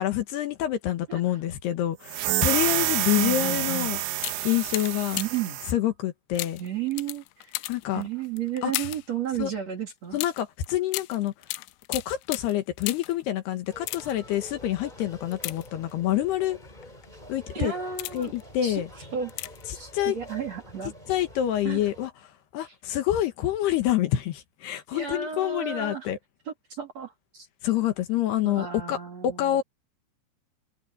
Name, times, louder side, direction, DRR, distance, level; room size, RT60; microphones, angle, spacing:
voice 1, 0.0-4.0 4.4-5.2 5.7-6.6 7.7-8.0 8.6-8.7 9.4-9.5 10.1-11.3 11.9-16.6 17.3-17.7 18.1-18.9 19.9-20.2 21.1-22.1 22.5-26.2 27.6-29.0 29.2-29.6, left 12 dB, 70° left, 3.1 m, -27 dB
sound 1, 2.1-5.8, right 15 dB, 80° right, 3.4 m, -28 dB
voice 2, 3.2-4.1 5.2-5.6 6.6-7.7 7.9-10.3 17.5-18.3 18.6-19.3 19.7-20.9 21.6-21.9 22.6-22.8 24.9-26.1 26.5-27.5 28.4-29.6, right 8 dB, 40° right, 3.4 m, -33 dB
sound 2, 3.6-3.8 4.2-5.5 6.4-9.1 10.2-13.2 13.7-14.4 15.3-16.2 16.8-17.1 17.6-18.4 19.3-19.8 20.0-20.1, left 21 dB, 85° left, 3.1 m, -36 dB
sound 3, 13.7-22.1, left 1 dB, 10° left, 3.8 m, -47 dB
omnidirectional pair, 5.4 m